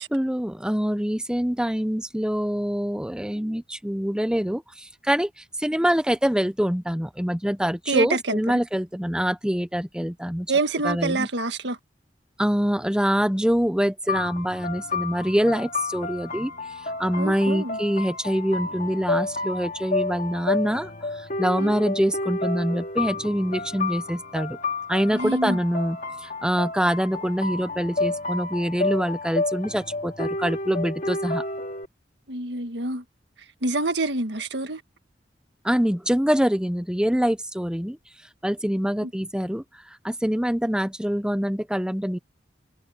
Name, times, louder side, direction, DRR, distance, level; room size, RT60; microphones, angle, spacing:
voice 1, 0.1-5.3 5.6-10.5 10.8-11.3 12.4-16.5 17.0-20.9 21.4-24.6 24.9-31.4 35.6-38.0 38.4-39.6 40.0-42.2, equal, 5° right, 1.0 m, -25 dB
voice 2, 7.9-8.4 10.5-11.8 17.2-17.8 21.6-21.7 25.1-25.6 32.3-33.0 33.6-34.8 39.0-39.1, right 3 dB, 75° right, 1.7 m, -26 dB
sound 1, 14.1-31.8, left 2 dB, 50° left, 2.7 m, -30 dB
head